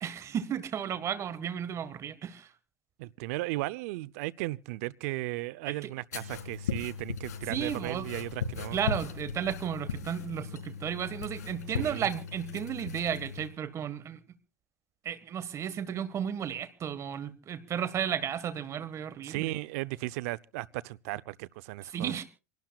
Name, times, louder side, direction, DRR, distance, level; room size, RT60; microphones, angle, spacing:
voice 1, 0.0-2.5 5.7-5.9 7.5-8.1 8.7-14.2 15.0-19.5 21.9-22.2, right 8 dB, 35° right, 1.6 m, -34 dB
voice 2, 3.0-8.8 11.8-12.1 19.2-22.1, right 20 dB, 65° right, 0.6 m, -36 dB
sound 1, 6.1-13.5, left 5 dB, 90° left, 4.3 m, -37 dB
27.5 x 12.0 x 2.4 m
hypercardioid pair, 105°, 9 cm